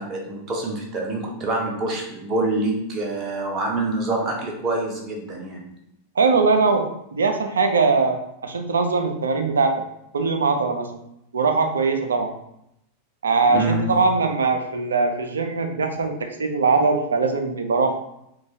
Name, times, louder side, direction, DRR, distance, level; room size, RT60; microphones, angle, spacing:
voice 1, 0.0-5.8 13.5-13.8, right 2 dB, 30° right, -1 dB, 0.6 m, -26 dB
voice 2, 6.2-9.8 10.1-10.9 11.3-12.3 13.2-18.0, right 4 dB, 70° right, 6 dB, 0.4 m, -21 dB
3.0 x 2.2 x 2.7 m, 0.79 s
figure-of-eight pair, 90°, 0 cm